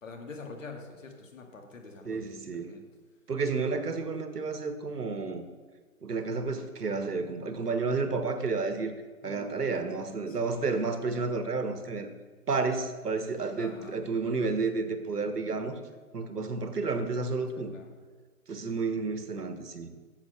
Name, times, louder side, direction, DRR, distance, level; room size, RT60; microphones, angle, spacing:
voice 1, 0.0-2.2 2.5-2.8 9.2-9.5 10.3-10.5 13.6-13.9 17.5-17.9, left 3 dB, 55° left, 2 dB, 2.2 m, -45 dB
voice 2, 2.0-2.7 3.3-5.5 6.0-8.9 9.2-12.1 12.5-15.8 16.1-17.7 18.5-19.9, right 4 dB, 85° right, 8 dB, 1.5 m, -31 dB
10.5 x 7.1 x 6.6 m, 1.4 s
hypercardioid pair, 155°, 46 cm